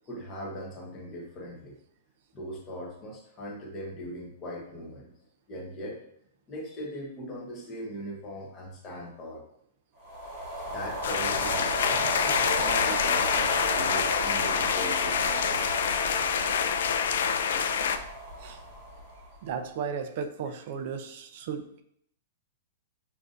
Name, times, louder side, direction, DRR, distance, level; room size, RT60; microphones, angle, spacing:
voice 1, 0.1-1.8 2.3-5.1 5.5-6.0 6.5-9.4 10.7-15.8, equal, 15° left, -2 dB, 0.8 m, -40 dB
sound 1, 10.0-19.5, right 1 dB, 20° right, 1.2 m, -34 dB
sound 2, 11.0-18.0, left 7 dB, 60° left, 0.3 m, -26 dB
voice 2, 19.4-21.8, right 6 dB, 35° right, 8 dB, 0.4 m, -35 dB
6.6 x 2.5 x 2.5 m, 0.71 s
hypercardioid pair, 180°, 0 cm